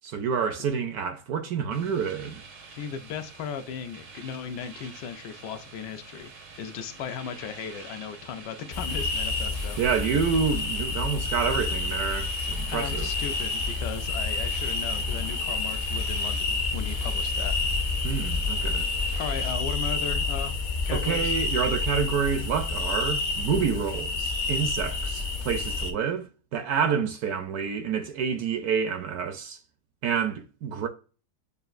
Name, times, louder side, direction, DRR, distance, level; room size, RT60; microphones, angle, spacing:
voice 1, 0.0-2.4 9.8-13.1 18.0-18.9 20.9-29.6 30.0-30.9, right 6 dB, 70° right, 1.0 m, -28 dB
sound 1, 1.7-19.5, right 4 dB, 85° right, 1.7 m, -47 dB
voice 2, 2.7-9.8 12.7-17.5 19.2-20.5 20.9-21.4, left 7 dB, 75° left, 1.2 m, -36 dB
sound 2, 8.7-25.9, left 3 dB, 60° left, 0.7 m, -29 dB
6.6 x 2.3 x 2.4 m
omnidirectional pair, 1.9 m